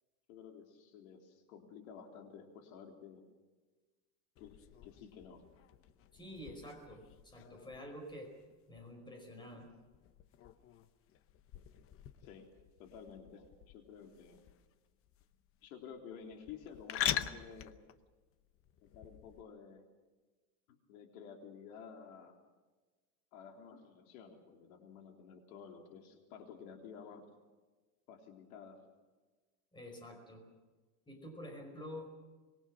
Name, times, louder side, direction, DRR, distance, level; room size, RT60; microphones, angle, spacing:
voice 1, 0.3-3.2 4.4-5.4 12.2-12.5 12.8-14.4 15.6-17.8 18.8-19.8 20.7-22.4 23.3-27.2 28.1-28.8, left 7 dB, 85° left, 3 dB, 3.6 m, -52 dB
sound 1, 4.4-19.4, left 11 dB, 35° left, 0.9 m, -45 dB
voice 2, 6.1-8.3 8.7-9.7 29.7-30.4 31.1-32.1, left 1 dB, 10° left, 3 dB, 5.1 m, -48 dB
25.5 x 21.5 x 6.3 m, 1.3 s
supercardioid pair, 155°, 41 cm